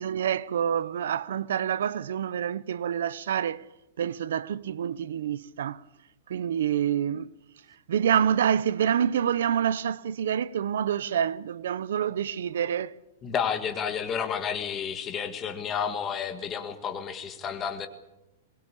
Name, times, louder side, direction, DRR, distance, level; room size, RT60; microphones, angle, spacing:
voice 1, 0.0-3.7 4.0-5.8 6.3-7.3 7.9-13.0, right 9 dB, 70° right, 0.8 m, -27 dB
voice 2, 13.2-17.9, left 7 dB, 15° left, 1.7 m, -31 dB
22.0 x 20.0 x 8.5 m
supercardioid pair, 180°, 0 cm